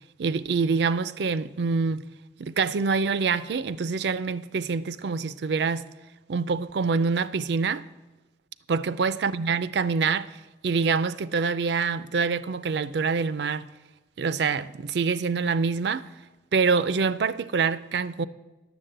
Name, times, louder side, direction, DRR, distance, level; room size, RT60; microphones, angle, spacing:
voice 1, 0.2-2.0 2.4-5.8 6.3-7.8 8.7-10.3 10.6-13.7 14.2-16.1 16.5-18.3, right 5 dB, 70° right, 0.4 m, -25 dB
10.0 x 7.1 x 7.8 m
head